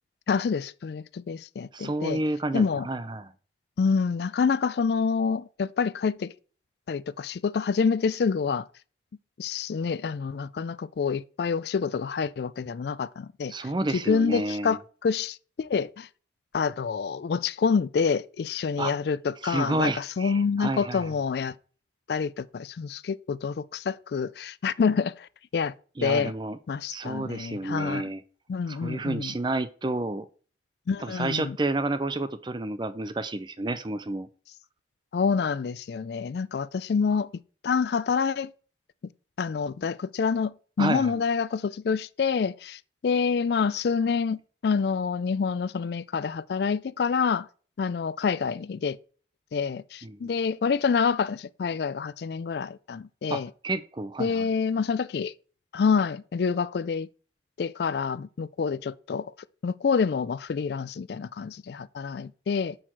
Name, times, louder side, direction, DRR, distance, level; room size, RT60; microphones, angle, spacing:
voice 1, 0.3-2.2 2.5-2.9 3.8-6.3 6.9-8.7 9.4-13.5 13.9-16.1 16.5-21.5 22.1-25.3 25.5-25.7 26.0-26.3 26.7-28.0 28.5-29.3 30.9-31.6 35.1-37.3 37.6-38.5 39.4-47.5 47.8-49.0 49.5-53.5 54.2-55.3 55.7-57.1 57.6-59.3 59.6-62.8, left 5 dB, 60° left, 0.3 m, -27 dB
voice 2, 1.7-3.3 13.5-14.8 18.8-18.9 19.4-21.1 26.0-26.6 26.9-28.2 28.7-30.3 31.0-34.3 40.8-41.2 50.0-50.3 53.3-54.5, right 2 dB, 25° right, 0.5 m, -30 dB
6.5 x 5.7 x 4.6 m
head